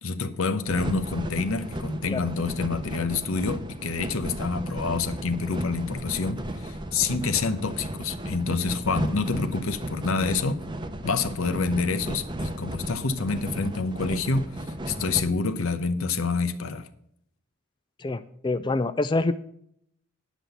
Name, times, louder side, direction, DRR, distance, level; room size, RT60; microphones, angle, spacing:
voice 1, 0.0-10.7 11.0-16.9, left 4 dB, 75° left, 9 dB, 0.9 m, -27 dB
sound 1, 0.7-15.2, right 1 dB, 20° right, 0.8 m, -35 dB
voice 2, 18.0-19.3, left 2 dB, 20° left, 12 dB, 0.3 m, -26 dB
10.0 x 6.1 x 6.9 m, 0.70 s
head